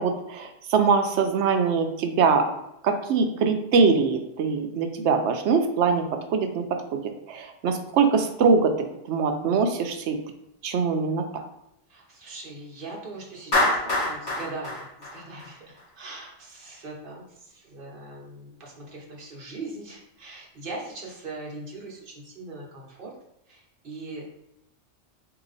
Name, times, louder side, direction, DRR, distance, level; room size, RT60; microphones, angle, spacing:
voice 1, 0.0-2.5 2.8-7.0 7.3-8.8 9.1-10.2 10.6-11.2, right 5 dB, 75° right, 6 dB, 0.9 m, -23 dB
voice 2, 11.9-23.1 23.5-24.2, right 2 dB, 50° right, -2 dB, 1.2 m, -40 dB
Clapping, 13.5-15.8, left 1 dB, 65° left, 2.0 m, -25 dB
4.0 x 2.9 x 3.9 m, 0.83 s
omnidirectional pair, 1.2 m